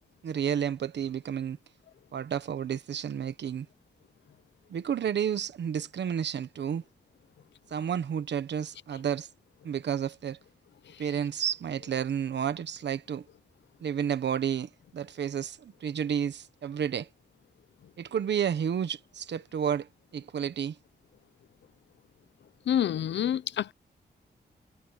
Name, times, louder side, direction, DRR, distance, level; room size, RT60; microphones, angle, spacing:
voice 1, 0.2-1.6 2.1-3.7 4.7-6.8 7.7-9.3 9.6-10.4 11.0-13.2 13.8-17.1 18.0-20.7, right 8 dB, 80° right, 1.2 m, -31 dB
voice 2, 22.7-23.7, left 10 dB, 90° left, 0.7 m, -27 dB
wide cardioid pair, 145°, 18 cm